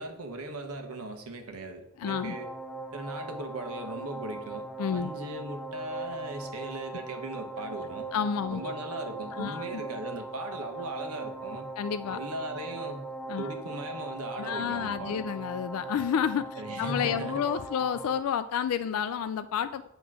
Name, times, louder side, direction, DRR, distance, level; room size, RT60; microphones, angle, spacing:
voice 1, 0.0-2.5 2.9-8.1 8.5-11.7 12.1-13.1 13.4-15.3 16.6-17.5, right 2 dB, 85° right, 5 dB, 1.0 m, -38 dB
voice 2, 2.0-2.4 4.8-5.1 8.1-8.7 9.3-9.8 11.8-12.2 13.3-13.6 14.4-19.9, left 8 dB, 75° left, 11 dB, 0.3 m, -30 dB
sound 1, 2.0-18.2, right 2 dB, 5° left, 0.4 m, -40 dB
8.0 x 3.0 x 6.1 m, 0.82 s
head